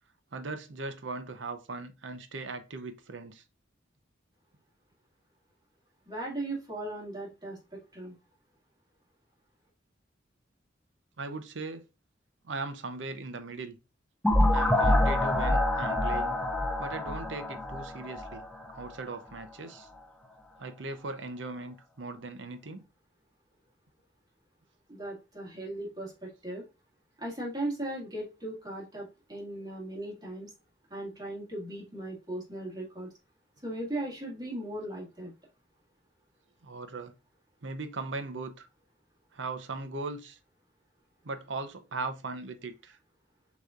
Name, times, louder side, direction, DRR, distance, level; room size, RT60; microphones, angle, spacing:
voice 1, 0.3-3.4 11.2-11.8 12.4-13.8 14.5-16.4 16.8-18.4 18.7-19.9 20.6-22.8 33.8-33.9 36.6-37.1 37.6-38.7 39.3-40.4 41.2-43.0, right 3 dB, 85° right, 0.7 m, -38 dB
voice 2, 6.1-8.2 24.9-26.6 27.2-30.5 30.9-33.1 33.6-35.3, right 1 dB, 20° right, 1.9 m, -37 dB
sound 1, 14.2-18.9, left 1 dB, 5° left, 0.6 m, -26 dB
6.5 x 3.1 x 2.4 m
head